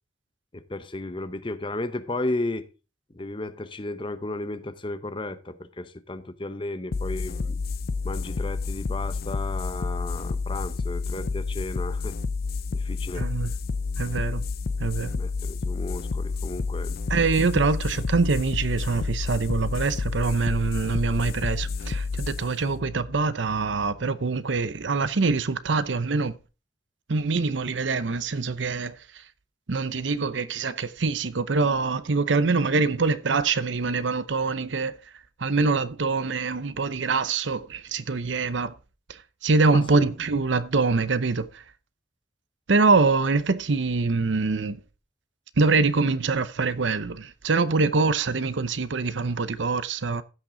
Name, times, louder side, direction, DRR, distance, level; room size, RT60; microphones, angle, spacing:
voice 1, 0.5-2.7 3.1-7.6 8.0-12.1 12.7-13.3 15.1-17.0 39.7-40.1, left 2 dB, 25° left, 0.8 m, -34 dB
sound 1, 6.9-24.0, left 4 dB, 50° left, 0.4 m, -30 dB
voice 2, 13.2-13.5 14.0-14.4 14.8-15.1 17.1-26.3 27.1-28.9 29.7-35.0 35.4-38.7 39.4-41.6 42.7-44.8 45.6-50.2, right 4 dB, 75° right, 0.7 m, -24 dB
15.5 x 5.9 x 3.8 m
head